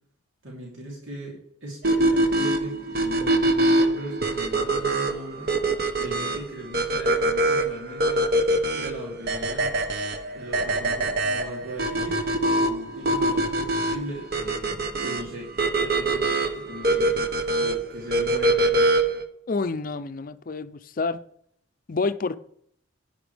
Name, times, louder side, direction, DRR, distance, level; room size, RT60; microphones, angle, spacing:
voice 1, 0.4-8.3 8.7-9.7 10.3-17.2 17.6-19.0, right 1 dB, 80° right, 3.0 m, -39 dB
sound 1, 1.8-19.2, right 1 dB, 50° right, 0.9 m, -24 dB
voice 2, 19.5-21.2 21.9-22.4, left 4 dB, 45° left, 0.5 m, -28 dB
11.0 x 9.6 x 3.4 m
head